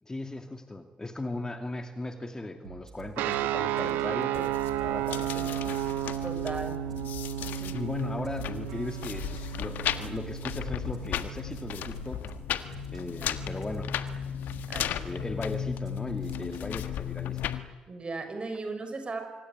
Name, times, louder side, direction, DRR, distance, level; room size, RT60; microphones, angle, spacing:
voice 1, 0.0-4.6 4.8-5.8 6.9-7.1 7.7-12.3 12.9-13.9 14.8-17.5, left 2 dB, 20° left, 6 dB, 2.4 m, -37 dB
sound 1, 2.6-16.9, right 5 dB, 90° right, 3.6 m, -48 dB
sound 2, 3.2-12.1, right 11 dB, 65° right, 1.6 m, -33 dB
sound 3, 4.3-17.6, left 9 dB, 60° left, 1.5 m, -35 dB
voice 2, 6.2-6.8 7.4-7.8 13.6-13.7 14.7-15.2 17.9-19.2, right 3 dB, 30° right, 7 dB, 6.6 m, -37 dB
25.0 x 24.5 x 9.6 m, 1.2 s
figure-of-eight pair, 45°, 3 cm